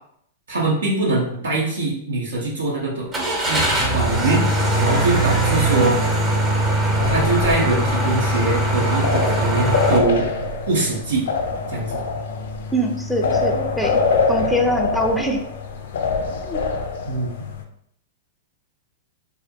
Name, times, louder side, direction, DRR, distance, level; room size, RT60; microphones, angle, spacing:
voice 1, 0.5-3.1 3.4-4.4 4.8-6.0 7.0-10.3 10.7-11.2 11.7-12.0 17.1-17.3, right 2 dB, 85° right, -4 dB, 0.6 m, -22 dB
Car / Engine starting, 3.1-10.0, right 1 dB, 30° right, 0.7 m, -20 dB
sound 1, 7.0-17.6, left 4 dB, 70° left, 0.3 m, -25 dB
voice 2, 12.7-14.0 14.3-15.4 16.5-16.6, equal, ahead, 2 dB, 0.4 m, -23 dB
2.4 x 2.1 x 2.6 m, 0.70 s
hypercardioid pair, 115°, 0 cm